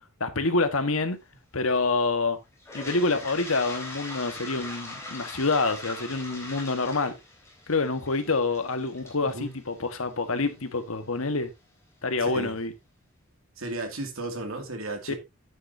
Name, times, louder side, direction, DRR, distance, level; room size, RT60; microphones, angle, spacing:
voice 1, 0.2-1.2 1.5-2.4 2.7-7.1 7.7-11.5 12.0-12.7 15.1-15.2, left 3 dB, 80° left, 1.5 m, -27 dB
Toilet flush, 2.6-10.5, left 2 dB, 15° left, 3.5 m, -41 dB
voice 2, 9.2-9.5 12.2-12.6 13.6-15.1, right 2 dB, 75° right, 2.5 m, -34 dB
10.0 x 9.2 x 2.7 m
head